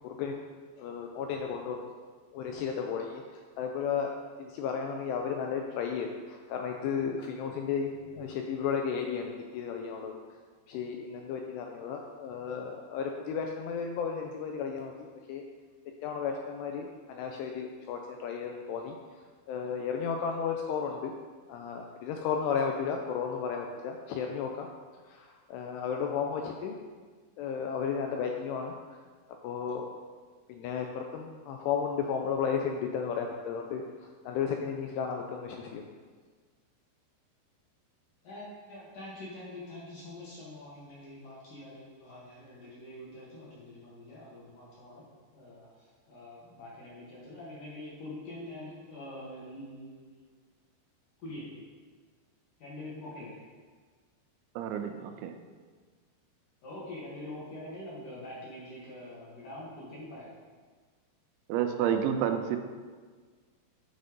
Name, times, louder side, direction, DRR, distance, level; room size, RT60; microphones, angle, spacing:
voice 1, 0.0-0.4 0.8-1.9 2.3-4.1 4.4-10.2 10.7-15.4 16.0-19.0 19.5-21.1 21.5-24.7 25.1-26.8 27.4-28.7 29.4-29.8 30.5-35.8, left 6 dB, 85° left, 2 dB, 2.5 m, -34 dB
voice 2, 38.2-45.0 45.3-50.2 51.2-51.7 52.6-53.5 56.6-60.4, left 1 dB, 60° left, -7 dB, 2.5 m, -45 dB
voice 3, 54.6-55.3 61.5-62.6, right 9 dB, 90° right, 7 dB, 3.0 m, -29 dB
9.4 x 4.3 x 5.2 m, 1.5 s
omnidirectional pair, 5.3 m